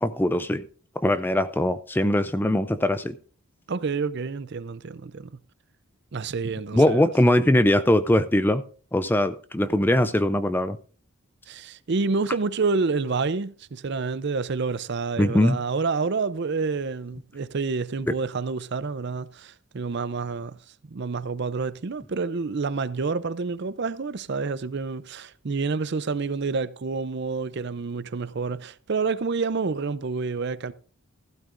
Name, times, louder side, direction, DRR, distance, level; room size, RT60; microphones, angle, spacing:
voice 1, 0.0-0.6 1.0-3.1 6.7-8.6 8.9-10.8 15.2-15.6, left 1 dB, 10° left, 0.4 m, -21 dB
voice 2, 3.7-5.3 6.1-7.0 11.5-20.6 20.9-30.7, right 4 dB, 50° right, 0.5 m, -28 dB
15.0 x 12.5 x 2.5 m
head